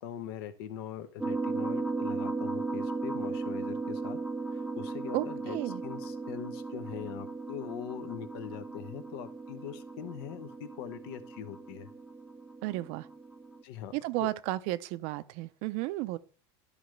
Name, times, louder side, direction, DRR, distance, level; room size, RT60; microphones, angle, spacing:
voice 1, 0.0-4.2 4.5-5.6 5.8-11.9 13.6-14.3, left 10 dB, 85° left, 0.9 m, -42 dB
sound 1, 1.2-13.6, right 3 dB, 5° right, 0.5 m, -37 dB
voice 2, 5.1-5.8 12.6-13.1 13.9-16.2, right 17 dB, 60° right, 0.5 m, -33 dB
12.5 x 5.1 x 3.2 m
supercardioid pair, 145°, 13 cm